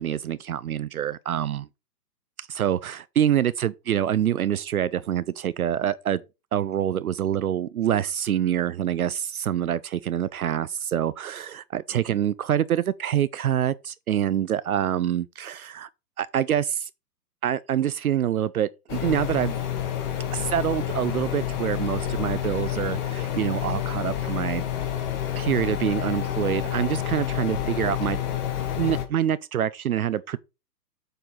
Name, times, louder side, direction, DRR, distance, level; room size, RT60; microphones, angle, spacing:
voice 1, 0.0-1.7 2.4-6.2 6.5-15.9 16.2-16.9 17.4-19.6 20.3-24.6 25.4-28.2 28.8-30.4, right 10 dB, 60° right, 0.6 m, -26 dB
sound 1, 18.9-29.1, left 10 dB, 25° left, 1.2 m, -29 dB
8.0 x 4.5 x 5.4 m
figure-of-eight pair, 120°, 49 cm